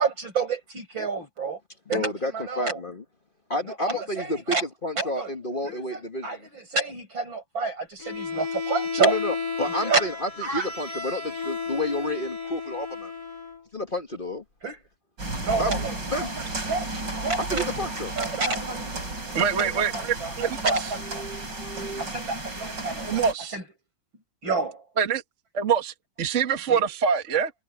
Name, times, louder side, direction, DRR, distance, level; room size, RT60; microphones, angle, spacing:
voice 1, 0.0-1.6 1.9-2.8 3.7-4.6 5.0-5.3 5.6-9.2 9.8-10.0 10.4-10.7 14.6-14.8 15.4-16.0 16.7-17.9 18.2-18.8 19.3-21.0 22.0-23.3 23.5-23.6 24.4-24.8 26.7-26.9, right 4 dB, 80° right, 8.4 m, -29 dB
voice 2, 1.9-3.0 3.5-6.5 9.0-13.1 13.7-14.4 15.6-16.3 17.5-18.1 21.0-22.1, left 1 dB, 30° left, 1.6 m, -31 dB
Bowed string instrument, 8.0-13.6, left 5 dB, 50° left, 5.1 m, -33 dB
sound 1, 15.2-23.3, right 2 dB, 65° right, 7.3 m, -33 dB
voice 3, 19.4-20.9 23.0-23.5 25.0-25.2 25.5-27.5, right 7 dB, 40° right, 1.7 m, -25 dB
omnidirectional pair, 2.1 m